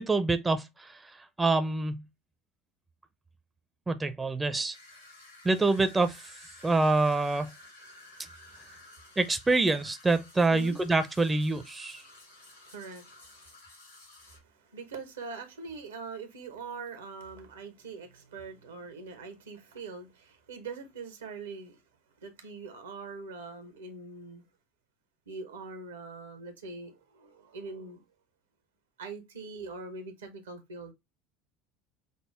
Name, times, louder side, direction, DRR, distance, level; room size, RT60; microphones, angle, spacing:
voice 1, 0.0-2.0 3.9-4.8 5.4-6.3 6.6-7.5 9.2-12.0, right 3 dB, 15° right, 0.5 m, -26 dB
sound 1, 4.7-14.4, left 2 dB, 85° left, 2.0 m, -53 dB
voice 2, 7.9-9.2 10.5-10.8 12.0-13.6 14.2-21.8 22.2-24.4 25.3-28.0 29.0-30.9, right 4 dB, 75° right, 0.9 m, -43 dB
5.4 x 2.0 x 3.4 m
figure-of-eight pair, 70°, 0 cm